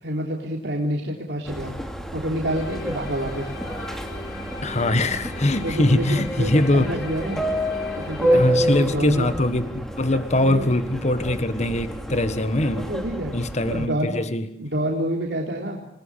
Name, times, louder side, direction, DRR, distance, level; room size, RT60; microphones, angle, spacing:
voice 1, 0.0-1.7 2.1-3.5 5.6-7.4 8.0-9.3 10.3-10.7 12.6-13.3 13.7-14.2 14.6-15.8, right 1 dB, 65° right, 0 dB, 3.6 m, -28 dB
Subway metro underground, 1.5-13.9, equal, ahead, 2.7 m, -29 dB
sound 1, 2.5-8.5, left 2 dB, 60° left, 6.3 m, -39 dB
voice 2, 4.6-6.8 8.3-12.9 13.3-14.5, left 1 dB, 40° left, 11 dB, 1.6 m, -22 dB
29.0 x 20.0 x 9.9 m, 0.76 s
head